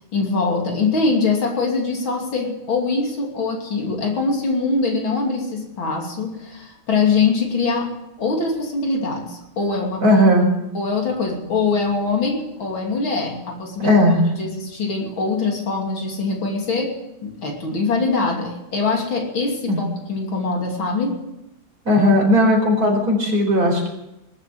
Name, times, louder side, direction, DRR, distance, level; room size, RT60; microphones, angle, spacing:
voice 1, 0.1-7.9 8.2-10.0 10.7-14.0 14.4-16.9 17.2-21.2, left 4 dB, 75° left, 1 dB, 3.6 m, -23 dB
voice 2, 10.0-10.5 13.8-14.3 19.7-19.8 21.8-23.9, left 1 dB, 45° right, 0 dB, 5.0 m, -16 dB
20.0 x 9.0 x 7.8 m, 0.88 s
omnidirectional pair, 2.2 m